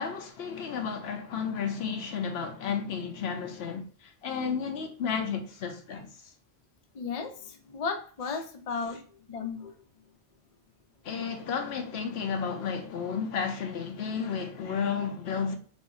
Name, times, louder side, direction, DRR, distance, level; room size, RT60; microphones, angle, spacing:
voice 1, 0.0-6.3 11.0-15.5, left 6 dB, 75° left, 0.9 m, -32 dB
voice 2, 6.9-9.0 9.3-9.7, left 5 dB, 45° left, 0.6 m, -34 dB
3.5 x 3.5 x 2.6 m
omnidirectional pair, 1.1 m